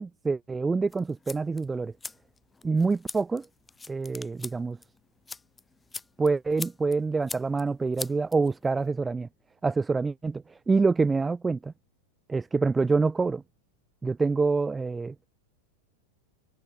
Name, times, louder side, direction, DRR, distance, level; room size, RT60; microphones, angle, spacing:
voice 1, 0.0-1.9 2.6-3.5 3.9-4.8 6.2-9.3 9.6-11.7 12.3-13.4 14.0-15.2, right 4 dB, 10° right, 0.3 m, -26 dB
sound 1, 0.9-8.9, left 3 dB, 10° left, 2.3 m, -43 dB
figure-of-eight pair, 90°, 0 cm